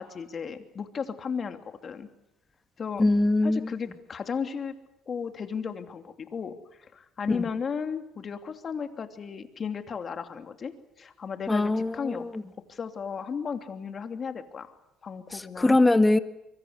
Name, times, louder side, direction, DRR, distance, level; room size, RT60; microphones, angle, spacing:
voice 1, 0.0-2.1 2.8-3.0 3.4-4.7 5.1-12.2 12.7-14.7 15.0-15.8, left 6 dB, 40° left, 7 dB, 2.8 m, -35 dB
voice 2, 3.0-3.8 7.3-7.4 11.5-12.4 15.3-16.2, left 2 dB, 15° left, 10 dB, 1.7 m, -23 dB
25.0 x 24.0 x 8.1 m, 0.83 s
supercardioid pair, 90°, 0 cm